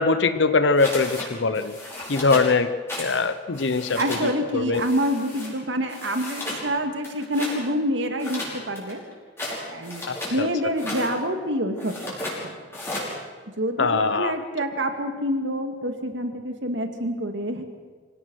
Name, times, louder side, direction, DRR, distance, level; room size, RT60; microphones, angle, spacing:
voice 1, 0.0-1.7 2.1-2.7 3.0-4.0 4.5-4.8 10.1-10.5 13.8-14.3, left 4 dB, 65° left, 12 dB, 0.8 m, -22 dB
sound 1, 0.8-1.3 1.5-2.5 2.9-3.2 3.5-4.3 4.7-5.5 5.9-6.6 7.0-7.6 8.2-10.4 10.7-11.1 11.8-12.4 12.7-13.1, left 1 dB, 15° left, 5.7 m, -34 dB
voice 2, 4.0-9.0 9.7-10.0 10.3-12.0 12.4-12.5 13.6-17.6, equal, 65° right, 6 dB, 2.2 m, -27 dB
25.5 x 17.0 x 6.4 m, 1.5 s
head